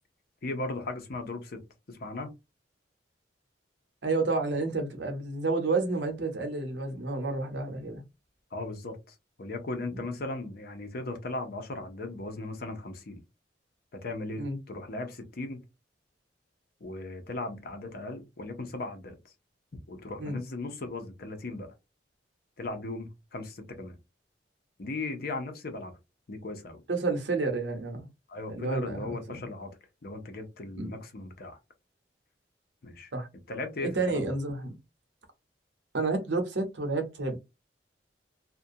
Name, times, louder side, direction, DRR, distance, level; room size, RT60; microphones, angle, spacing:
voice 1, 0.4-1.6 1.9-2.3 8.5-13.2 13.9-15.6 16.8-19.3 19.9-21.7 22.6-24.0 24.8-25.9 26.3-26.8 28.3-29.7 30.0-31.6 32.8-33.1 33.5-34.3, left 2 dB, 55° left, 0.6 m, -37 dB
voice 2, 4.0-8.0 9.9-10.0 14.4-14.6 20.2-20.4 26.9-28.1 28.5-29.1 30.7-30.9 33.1-33.3 33.8-34.8 35.9-37.4, right 3 dB, 80° right, 0.8 m, -30 dB
2.5 x 2.1 x 2.6 m
head